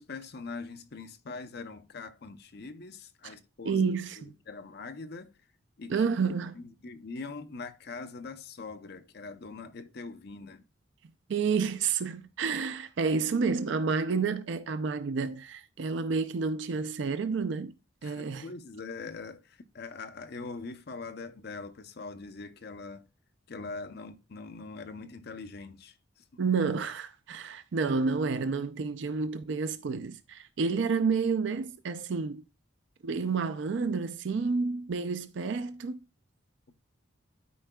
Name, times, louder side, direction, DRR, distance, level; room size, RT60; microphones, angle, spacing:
voice 1, 0.0-3.8 4.2-5.3 5.8-6.0 6.5-10.6 18.0-23.0 23.5-26.4, left 4 dB, 55° left, 0.6 m, -42 dB
voice 2, 3.6-4.3 5.9-6.6 11.3-17.7 18.0-18.5 26.4-32.4 33.0-36.0, right 5 dB, 65° right, 0.4 m, -30 dB
12.5 x 4.5 x 2.2 m
head